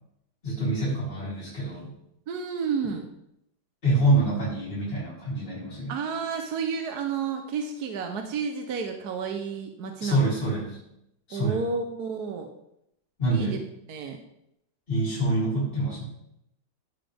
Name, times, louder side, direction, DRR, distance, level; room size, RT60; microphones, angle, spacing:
voice 1, 0.4-1.9 3.8-5.9 10.0-10.8 11.3-11.6 13.2-13.6 14.9-16.0, right 1 dB, 30° left, -9 dB, 3.4 m, -26 dB
voice 2, 2.3-3.1 5.9-10.3 11.3-12.5 13.3-13.6 13.9-14.2, right 5 dB, 65° right, 4 dB, 1.3 m, -31 dB
14.0 x 5.6 x 3.4 m, 0.80 s
omnidirectional pair, 1.9 m